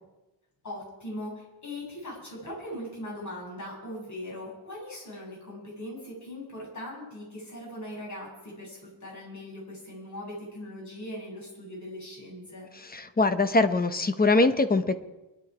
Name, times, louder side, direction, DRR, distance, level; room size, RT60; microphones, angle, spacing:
voice 1, 0.6-12.7, left 1 dB, 40° left, -4 dB, 7.7 m, -40 dB
voice 2, 12.9-15.0, left 3 dB, 20° left, 10 dB, 0.8 m, -23 dB
23.5 x 11.0 x 4.9 m, 1.0 s
wide cardioid pair, 160°, 46 cm